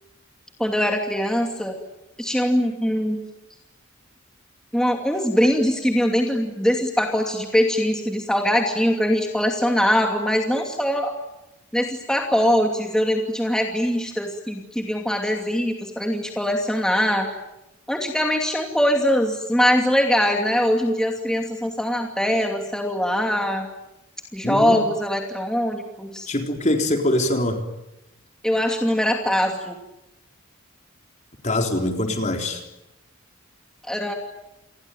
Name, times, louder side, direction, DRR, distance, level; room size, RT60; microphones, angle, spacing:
voice 1, 0.6-1.8 2.2-3.2 4.7-11.1 11.7-17.3 17.9-23.7 24.3-26.3 28.4-29.8 33.9-34.1, equal, 5° left, 2 dB, 2.6 m, -22 dB
voice 2, 24.4-24.9 26.3-27.7 31.4-32.6, left 1 dB, 35° left, 4 dB, 4.0 m, -23 dB
29.0 x 22.0 x 9.3 m, 0.91 s
head